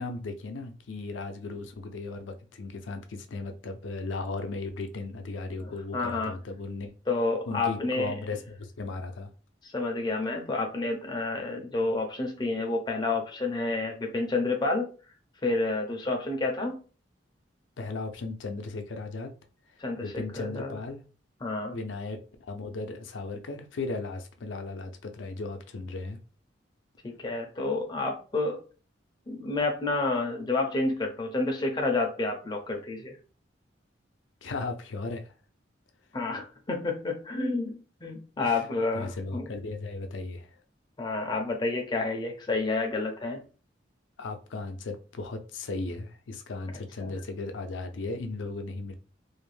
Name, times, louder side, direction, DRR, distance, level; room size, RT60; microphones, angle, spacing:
voice 1, 0.0-6.9 7.5-9.3 17.8-19.3 20.0-21.0 21.7-22.2 22.5-26.2 34.4-35.3 38.4-38.7 38.9-40.5 44.2-48.9, left 3 dB, 80° left, 0.5 m, -36 dB
voice 2, 5.6-6.3 7.1-8.1 9.7-14.9 15.4-16.8 19.8-20.8 21.4-21.8 27.0-28.6 29.3-33.2 36.1-39.5 41.0-43.4 47.0-47.1, left 3 dB, 25° left, 0.4 m, -29 dB
2.5 x 2.1 x 3.1 m
head